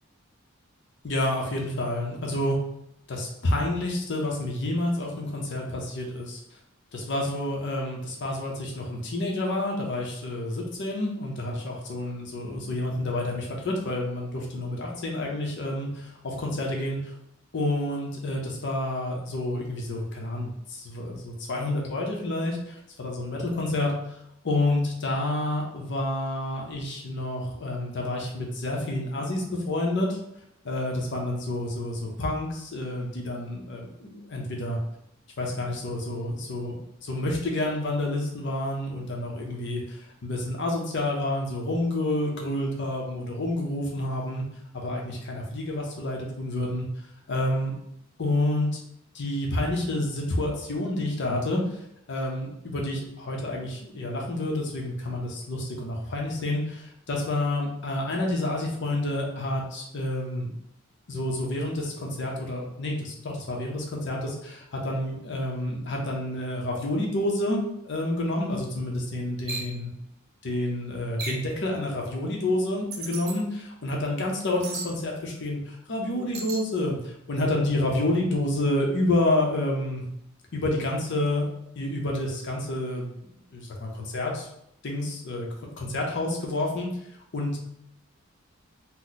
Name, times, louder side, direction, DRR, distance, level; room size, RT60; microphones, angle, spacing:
voice 1, 1.0-2.6 3.1-6.4 6.9-17.1 17.5-24.2 24.4-30.2 30.6-34.8 35.4-36.8 37.0-44.4 44.7-46.9 47.3-47.7 48.2-48.7 49.1-51.8 52.1-60.5 61.1-69.9 70.4-80.1 80.5-81.4 81.8-83.1 83.5-84.5 84.8-85.5 85.8-86.9 87.3-87.6, left 1 dB, 60° left, -1 dB, 0.7 m, -29 dB
sound 1, 69.5-69.7 71.2-71.5 72.9-73.4 74.6-74.9 76.3-76.6, right 4 dB, 50° right, 0.6 m, -35 dB
2.8 x 2.1 x 3.9 m, 0.76 s
head